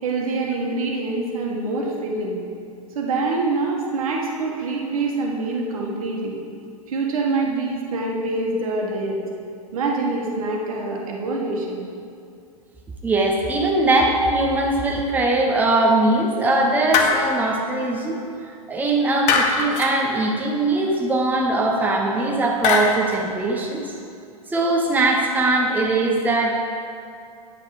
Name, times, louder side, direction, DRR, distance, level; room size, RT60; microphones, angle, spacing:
voice 1, 0.0-2.4 2.9-6.4 6.9-9.2 9.7-11.9, right 3 dB, 70° right, -2 dB, 1.7 m, -25 dB
voice 2, 13.0-18.2 18.7-23.9 24.5-26.6, right 2 dB, 10° right, -1 dB, 1.0 m, -21 dB
sound 1, 16.9-17.6 19.3-19.9 22.6-23.2, left 4 dB, 40° left, 1.0 m, -20 dB
9.5 x 5.7 x 5.0 m, 2.5 s
hypercardioid pair, 105°, 19 cm